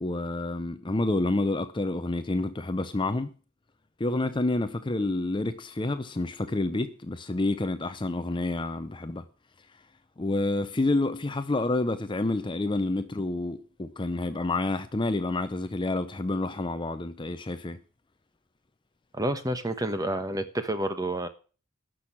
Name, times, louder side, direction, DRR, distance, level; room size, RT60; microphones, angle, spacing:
voice 1, 0.0-3.3 4.0-9.2 10.2-17.8, left 2 dB, 20° left, 0.6 m, -28 dB
voice 2, 19.1-21.3, right 1 dB, 15° right, 1.2 m, -29 dB
12.0 x 6.3 x 8.5 m
head